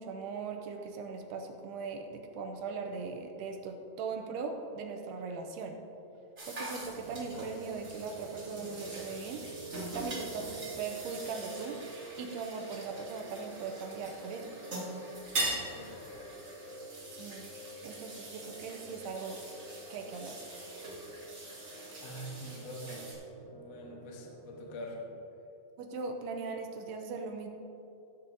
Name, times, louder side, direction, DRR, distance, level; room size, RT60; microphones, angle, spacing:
voice 1, 0.0-5.8 6.4-9.4 9.9-10.5 10.8-11.8 12.2-14.5 17.1-17.5 17.8-19.4 19.9-20.4 25.8-27.5, right 4 dB, 80° right, 3 dB, 2.6 m, -39 dB
sound 1, 6.4-23.1, right 1 dB, 35° right, 1.4 m, -42 dB
sound 2, 6.7-25.1, right 3 dB, 60° left, 3.6 m, -48 dB
voice 2, 15.5-16.2 22.0-23.2 23.5-25.0, equal, 80° left, 0 dB, 1.4 m, -45 dB
16.5 x 8.6 x 2.8 m, 2.9 s
omnidirectional pair, 5.0 m